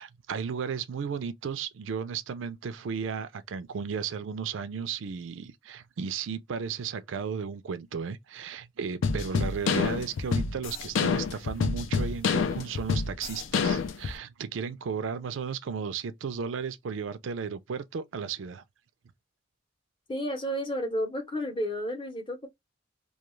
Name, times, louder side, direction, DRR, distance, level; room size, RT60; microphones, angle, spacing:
voice 1, 0.0-18.6, right 6 dB, 90° right, 0.4 m, -34 dB
sound 1, 9.0-14.2, left 5 dB, 90° left, 0.4 m, -27 dB
voice 2, 20.1-22.5, equal, 25° left, 0.7 m, -31 dB
2.3 x 2.3 x 3.0 m
head